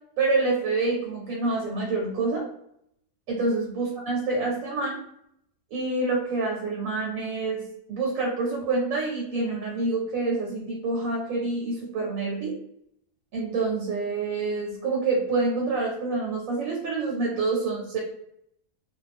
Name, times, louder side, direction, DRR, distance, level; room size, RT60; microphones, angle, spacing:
voice 1, 0.2-2.4 3.3-5.0 5.7-12.5 13.3-18.0, right 3 dB, 65° right, -2 dB, 1.1 m, -27 dB
2.5 x 2.3 x 3.3 m, 0.73 s
omnidirectional pair, 1.6 m